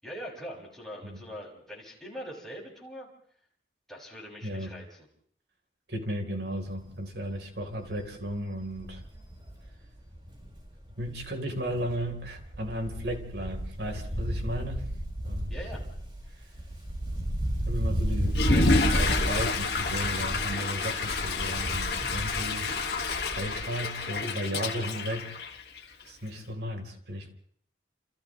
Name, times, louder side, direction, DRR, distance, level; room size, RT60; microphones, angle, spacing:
voice 1, 0.0-3.1 3.9-5.1 15.5-15.9, equal, 5° left, -5 dB, 6.7 m, -42 dB
voice 2, 4.4-4.7 5.9-9.0 11.0-14.9 15.2-15.5 17.6-22.7 23.3-25.3 26.1-27.3, equal, 70° right, 3 dB, 4.0 m, -35 dB
Wind, 6.7-7.0 7.3-7.4 7.7-11.3 11.6-23.7 24.0-24.1, equal, 25° right, 5.9 m, -32 dB
Water / Toilet flush, 18.3-26.0, left 3 dB, 65° left, 2.3 m, -29 dB
29.5 x 29.5 x 3.2 m, 0.63 s
head